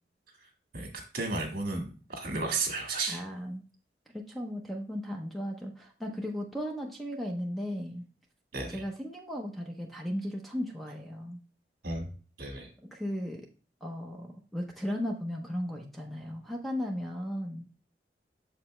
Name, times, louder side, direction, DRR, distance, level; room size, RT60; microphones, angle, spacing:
voice 1, 0.7-3.2 8.5-8.8 11.8-12.1 12.4-12.7, right 3 dB, 55° right, 3 dB, 1.8 m, -33 dB
voice 2, 3.1-3.6 4.1-8.0 8.7-11.4 12.9-13.5 13.8-17.7, equal, ahead, 1 dB, 0.7 m, -36 dB
6.7 x 4.9 x 3.2 m, 0.37 s
head